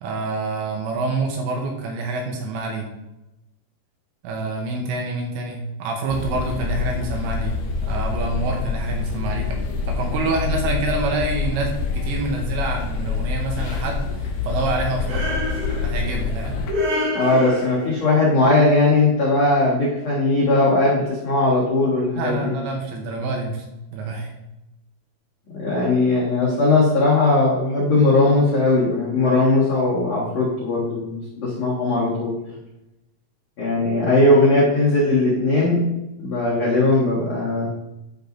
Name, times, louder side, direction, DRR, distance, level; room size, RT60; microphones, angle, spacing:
voice 1, 0.0-2.9 4.2-7.6 7.8-9.6 9.9-15.3 15.8-16.6 22.2-23.7 23.9-24.3, right 3 dB, 80° right, 1 dB, 2.9 m, -27 dB
sound 1, 6.1-16.7, left 4 dB, 85° left, 2.1 m, -26 dB
sound 2, 15.1-16.1 16.7-18.1, left 1 dB, 55° right, 3.6 m, -26 dB
voice 2, 17.1-22.5 25.5-32.3 33.6-35.8 36.2-37.7, left 2 dB, 70° left, -7 dB, 1.6 m, -19 dB
12.5 x 5.3 x 2.6 m, 0.94 s
omnidirectional pair, 5.8 m